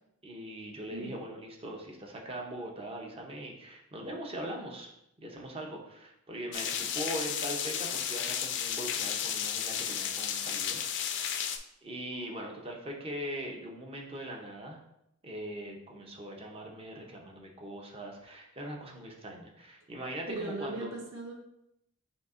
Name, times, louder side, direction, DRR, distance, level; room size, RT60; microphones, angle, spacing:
voice 1, 0.2-4.9 5.2-11.4 11.8-14.8 15.2-20.9, right 1 dB, 25° right, 0 dB, 0.7 m, -41 dB
sound 1, 6.5-11.6, left 8 dB, 60° left, 0.4 m, -33 dB
voice 2, 20.3-21.3, right 2 dB, 70° right, -1 dB, 1.1 m, -38 dB
6.7 x 2.7 x 2.5 m, 0.80 s
head